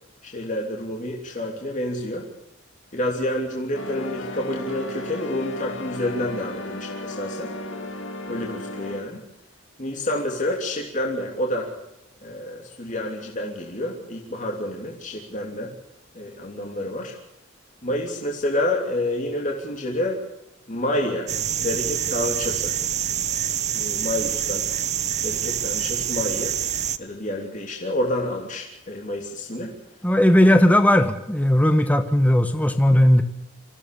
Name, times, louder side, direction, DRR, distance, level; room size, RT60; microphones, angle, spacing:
voice 1, 0.2-2.3 2.9-7.5 8.3-9.2 9.8-11.7 12.2-15.7 16.1-17.1 17.8-20.2 20.7-21.3 21.6-22.8 23.7-24.7 25.2-26.6 27.0-29.7, left 1 dB, 40° left, 0 dB, 3.2 m, -28 dB
sound 1, 3.7-9.0, left 2 dB, 70° left, 2.6 m, -34 dB
sound 2, 21.3-27.0, right 9 dB, 35° right, 0.9 m, -26 dB
voice 2, 30.0-33.2, left 1 dB, 10° left, 7 dB, 1.1 m, -17 dB
26.0 x 16.0 x 6.9 m, 0.86 s
head